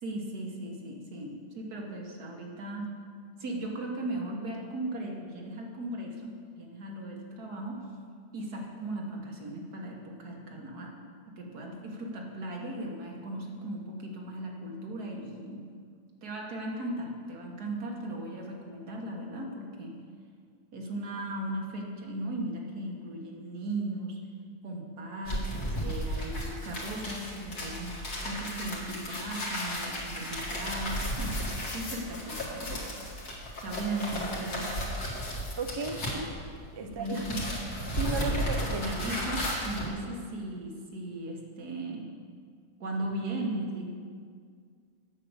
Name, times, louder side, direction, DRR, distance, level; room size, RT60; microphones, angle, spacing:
voice 1, 0.0-3.0 3.4-7.9 8.3-11.0 11.3-15.7 16.2-20.0 20.7-24.2 24.6-27.9 28.2-32.9 33.6-34.8 36.8-37.4 38.2-38.5 38.8-42.1 42.8-43.8, right 1 dB, 85° right, 0 dB, 2.0 m, -37 dB
sound 1, 25.2-36.7 37.0-39.9, equal, 80° left, 2.5 m, -34 dB
voice 2, 35.6-36.3 36.7-37.2 37.9-38.8, right 4 dB, 45° right, 6 dB, 0.3 m, -34 dB
8.6 x 6.6 x 8.1 m, 2.1 s
omnidirectional pair, 1.6 m